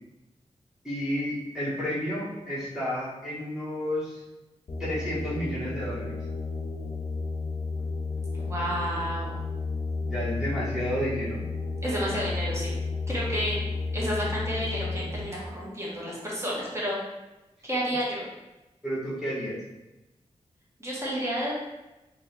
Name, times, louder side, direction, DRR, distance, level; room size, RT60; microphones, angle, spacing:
voice 1, 0.8-4.2 4.8-6.1 10.0-11.4 18.8-19.6, equal, 5° right, -9 dB, 1.3 m, -31 dB
sound 1, 4.7-15.2, left 3 dB, 60° left, 0.6 m, -32 dB
voice 2, 8.5-9.3 11.8-12.8 13.1-13.6 13.9-16.9 17.6-18.3 20.8-21.5, equal, 20° right, -6 dB, 1.2 m, -30 dB
3.6 x 2.9 x 3.4 m, 1.0 s
wide cardioid pair, 85°, 12 cm